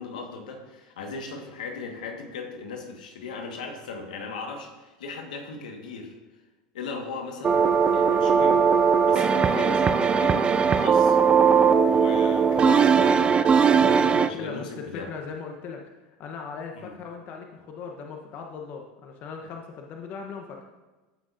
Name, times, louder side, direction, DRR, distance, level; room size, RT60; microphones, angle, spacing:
voice 1, 0.0-6.1 6.7-11.2 11.9-13.0 14.1-15.1 16.7-16.9, left 4 dB, 85° left, 2 dB, 1.6 m, -37 dB
sound 1, 7.4-14.3, right 6 dB, 25° right, 0.4 m, -19 dB
voice 2, 13.8-15.8 16.2-20.6, left 5 dB, 45° left, 2 dB, 1.1 m, -38 dB
14.0 x 6.2 x 2.7 m, 1.2 s
hypercardioid pair, 105°, 4 cm